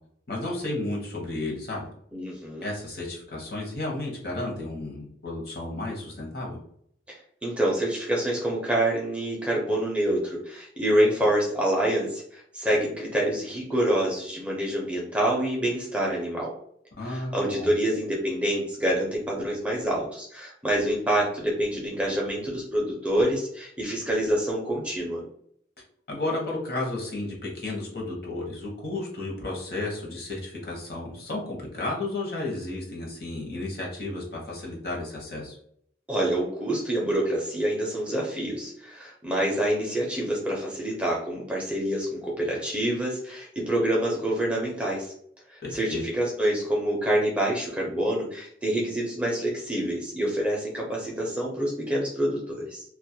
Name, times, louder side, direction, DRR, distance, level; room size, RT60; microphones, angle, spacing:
voice 1, 0.3-1.9 2.6-6.6 17.0-17.7 26.1-35.6 45.6-46.0, left 2 dB, 55° left, -3 dB, 0.8 m, -33 dB
voice 2, 2.1-2.7 7.1-16.5 17.0-25.2 36.1-45.1 45.5-52.8, right 1 dB, 5° right, -3 dB, 0.4 m, -27 dB
2.2 x 2.0 x 2.7 m, 0.66 s
head